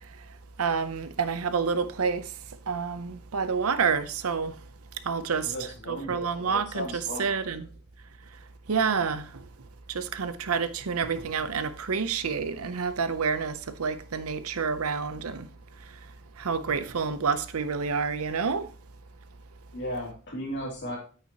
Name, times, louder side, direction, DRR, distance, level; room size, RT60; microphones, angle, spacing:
voice 1, 0.6-2.3 2.7-4.6 5.0-7.7 8.7-9.4 9.9-15.5 16.4-18.7, right 5 dB, 75° right, 0.7 m, -28 dB
voice 2, 5.4-7.3 19.7-21.0, equal, 55° left, 3.0 m, -36 dB
9.1 x 8.5 x 3.0 m
head